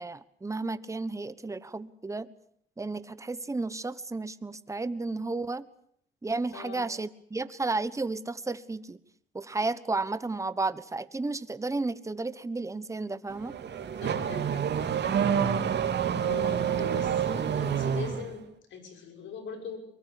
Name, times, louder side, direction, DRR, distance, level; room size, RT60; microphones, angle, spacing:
voice 1, 0.0-2.3 2.8-5.6 6.2-9.0 9.3-13.6, right 3 dB, 15° right, 14 dB, 1.2 m, -33 dB
voice 2, 6.5-6.9 14.0-14.9 16.3-18.4 18.7-19.8, left 6 dB, 75° left, 6 dB, 6.3 m, -41 dB
Car / Accelerating revving vroom, 13.3-18.3, right 8 dB, 60° right, 2.7 m, -28 dB
23.5 x 20.5 x 8.4 m, 0.66 s
cardioid pair, 90°, 20 cm